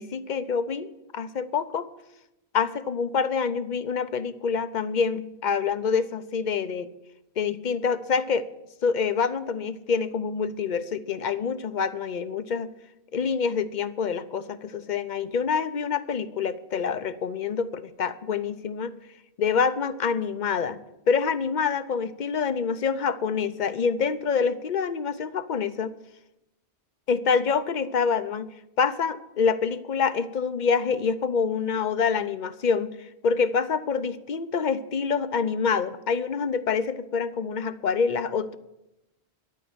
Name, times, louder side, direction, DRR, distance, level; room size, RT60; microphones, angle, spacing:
voice 1, 0.0-1.9 2.5-6.9 7.4-8.5 8.8-12.7 13.1-18.9 19.4-20.8 21.1-25.9 27.1-28.5 28.8-32.9 33.2-38.6, left 5 dB, 50° left, 13 dB, 0.8 m, -26 dB
11.5 x 9.3 x 7.9 m, 0.90 s
omnidirectional pair, 1.1 m